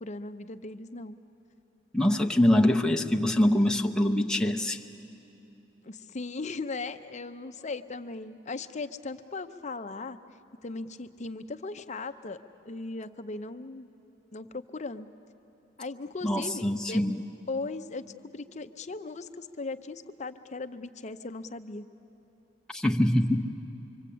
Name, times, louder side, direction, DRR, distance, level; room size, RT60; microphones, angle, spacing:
voice 1, 0.0-1.2 5.8-10.2 10.6-12.4 12.6-13.9 14.3-15.1 15.8-17.0 17.5-18.1 18.3-21.9, left 3 dB, 40° left, 9 dB, 0.7 m, -38 dB
voice 2, 1.9-4.8 16.2-17.3 22.7-23.5, left 1 dB, 5° left, 1 dB, 0.8 m, -24 dB
25.0 x 24.5 x 8.5 m, 2.9 s
head